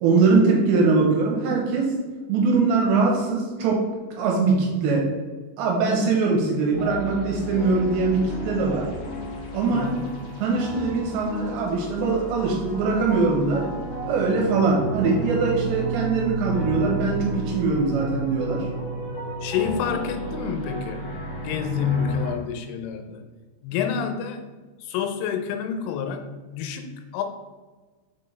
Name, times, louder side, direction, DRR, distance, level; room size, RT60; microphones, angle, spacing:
voice 1, 0.0-1.9 2.3-3.9 4.2-5.1 5.6-8.9 9.5-9.9 10.4-13.7 14.1-18.7, right 4 dB, 75° right, -1 dB, 3.0 m, -22 dB
sound 1, 6.7-22.4, right 2 dB, 60° left, 2.3 m, -32 dB
voice 2, 9.7-10.1 19.4-23.2 23.6-24.4 24.8-26.2 26.5-27.2, left 7 dB, 90° left, 6 dB, 3.2 m, -28 dB
6.8 x 4.3 x 3.3 m, 1.3 s
omnidirectional pair, 5.5 m